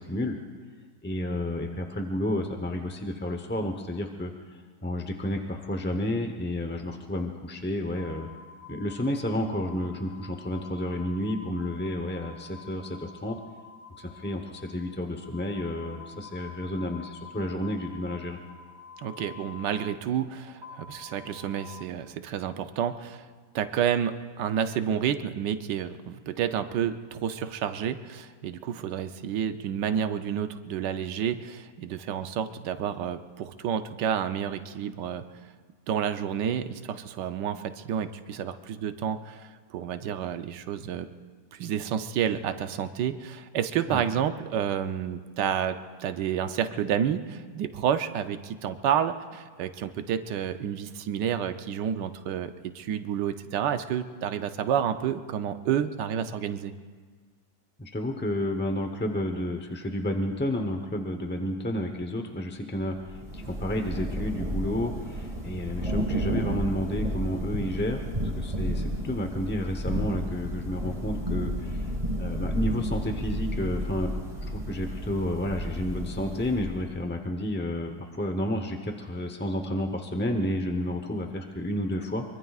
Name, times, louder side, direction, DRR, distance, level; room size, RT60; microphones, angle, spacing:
voice 1, 1.0-8.3 8.7-13.4 14.0-18.4 43.9-44.0 57.8-68.0 68.4-74.1 74.5-82.2, left 1 dB, 10° left, 5 dB, 0.5 m, -31 dB
sound 1, 8.0-21.8, left 5 dB, 55° right, 3.3 m, -48 dB
voice 2, 19.0-23.3 23.5-35.2 35.9-41.1 41.5-56.7, right 9 dB, 85° right, 9 dB, 1.4 m, -30 dB
Thunder / Rain, 62.9-77.0, equal, 20° right, 1.5 m, -32 dB
24.0 x 24.0 x 2.4 m, 1.5 s
omnidirectional pair, 1.8 m